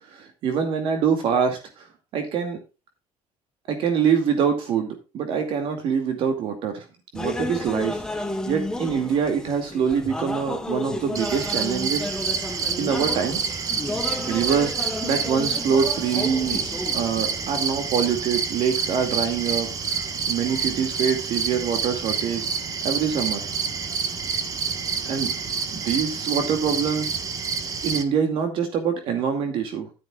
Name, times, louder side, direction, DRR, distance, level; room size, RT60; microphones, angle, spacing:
voice 1, 0.1-1.9 2.1-2.6 3.7-6.8 7.1-8.0 8.5-12.1 12.8-13.8 14.2-14.7 15.0-16.6 16.9-22.5 22.8-23.4 25.0-25.3 25.7-27.2 27.8-29.9, right 7 dB, 60° right, 6 dB, 2.3 m, -25 dB
sound 1, 7.1-17.6, left 2 dB, 5° left, 1.2 m, -32 dB
sound 2, 11.2-28.0, right 6 dB, 35° right, 1.4 m, -28 dB
12.0 x 10.0 x 2.4 m, 0.29 s
cardioid pair, 145°, 10 cm